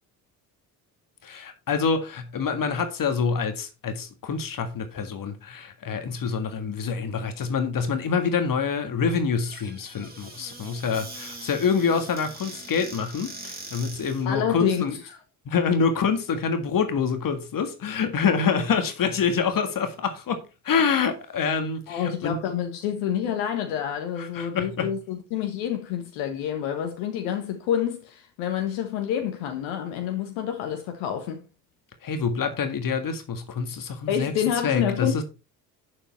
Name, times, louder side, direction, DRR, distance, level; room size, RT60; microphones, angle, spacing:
voice 1, 1.2-15.0 15.5-22.4 24.2-24.9 32.0-34.3 34.6-35.2, left 5 dB, 45° left, 1.8 m, -26 dB
Squeak / Cupboard open or close, 9.4-14.3, right 2 dB, 20° right, 4.1 m, -42 dB
voice 2, 14.2-15.2 21.9-31.4 34.1-35.2, left 9 dB, 70° left, 1.5 m, -28 dB
8.7 x 7.2 x 4.3 m
hypercardioid pair, 55°, 47 cm